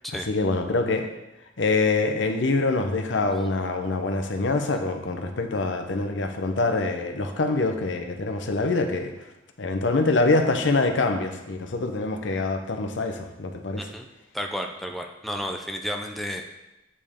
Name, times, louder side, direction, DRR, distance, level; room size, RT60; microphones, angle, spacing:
voice 1, 0.3-1.1 1.6-9.1 9.6-13.8, left 3 dB, 85° left, 5 dB, 0.8 m, -25 dB
voice 2, 13.8-14.1 14.3-16.5, equal, ahead, 2 dB, 0.4 m, -32 dB
8.3 x 5.4 x 3.6 m, 0.96 s
head